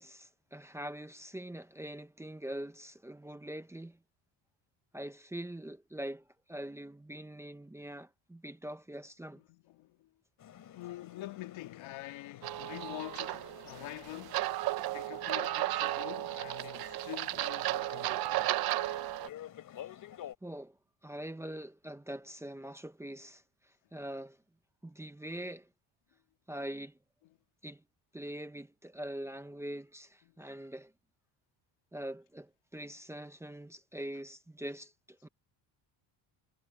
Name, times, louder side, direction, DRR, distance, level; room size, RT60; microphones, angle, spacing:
voice 1, 0.0-4.0 4.9-9.4 20.4-20.8 21.0-24.4 24.8-25.7 26.5-27.0 27.6-27.8 28.1-30.9 31.9-35.3, right 1 dB, 5° right, 0.8 m, -43 dB
voice 2, 9.4-10.1 10.7-14.5 14.9-18.5 30.3-30.4, left 16 dB, 85° left, 2.1 m, -46 dB
sound 1, 10.4-20.4, left 11 dB, 45° left, 3.6 m, -51 dB
sound 2, 12.4-19.3, right 16 dB, 55° right, 0.6 m, -34 dB
cardioid pair, 160°, 45 cm